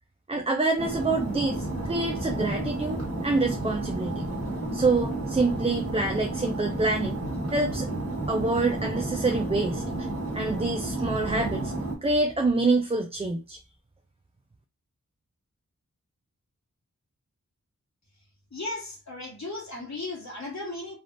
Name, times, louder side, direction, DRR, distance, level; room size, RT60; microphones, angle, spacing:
voice 1, 0.3-4.3 4.7-7.2 7.5-7.9 8.3-10.1 10.3-11.7 12.0-13.6, right 3 dB, 20° right, 4 dB, 0.4 m, -26 dB
sound 1, 0.8-12.0, right 1 dB, 45° right, 1.5 m, -31 dB
voice 2, 18.5-21.0, left 2 dB, 60° left, -2 dB, 1.4 m, -36 dB
3.4 x 2.4 x 2.5 m, 0.33 s
cardioid pair, 45°, 32 cm